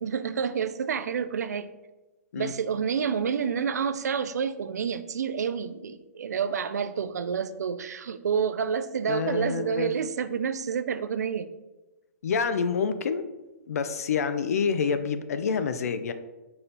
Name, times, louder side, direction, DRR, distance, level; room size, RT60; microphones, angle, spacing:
voice 1, 0.0-1.7 2.4-11.5, right 7 dB, 85° right, 12 dB, 0.5 m, -29 dB
voice 2, 9.1-9.9 12.2-13.2 13.7-16.1, left 6 dB, 65° left, 11 dB, 0.6 m, -27 dB
5.5 x 4.2 x 4.0 m, 1.1 s
hypercardioid pair, 165°, 9 cm